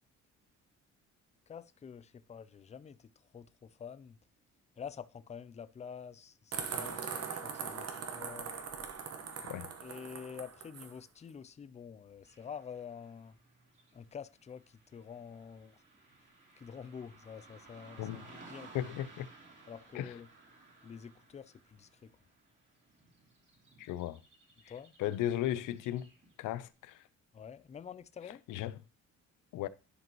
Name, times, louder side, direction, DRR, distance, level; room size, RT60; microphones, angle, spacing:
voice 1, 1.5-4.2 4.8-8.5 9.8-13.4 13.9-15.8 16.6-18.9 19.7-20.3 20.8-22.1 24.7-24.9 27.3-28.4, left 7 dB, 25° left, 0.4 m, -48 dB
sound 1, 6.5-10.9, right 6 dB, 55° right, 1.3 m, -41 dB
Car passing by / Traffic noise roadway noise, 12.2-26.5, right 3 dB, 40° right, 2.7 m, -58 dB
voice 2, 18.7-19.3 19.9-20.1 23.8-24.2 25.0-26.1 26.4-26.9 28.5-28.7 29.5-29.7, left 12 dB, 85° left, 0.6 m, -35 dB
11.0 x 5.1 x 3.0 m
cardioid pair, 90°, 30 cm